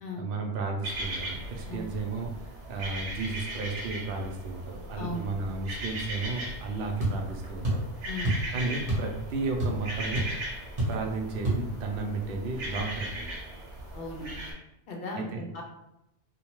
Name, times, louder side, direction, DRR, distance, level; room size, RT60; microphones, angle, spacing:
voice 1, 0.2-7.8 8.5-10.2 10.9-13.3 15.2-15.4, right 3 dB, 60° right, 2 dB, 0.7 m, -33 dB
sound 1, 0.8-14.5, right 1 dB, 85° right, 1.1 m, -38 dB
voice 2, 5.0-5.3 8.1-8.3 13.9-14.3 14.9-15.6, left 2 dB, 60° left, 0 dB, 0.8 m, -36 dB
sound 2, 7.0-7.2 7.6-7.9 8.2-8.5 8.9-9.1 9.4-9.9 10.2-10.3 10.8-11.0 11.4-11.6, right 1 dB, 35° right, 0.9 m, -27 dB
2.7 x 2.2 x 2.9 m, 0.85 s
omnidirectional pair, 1.2 m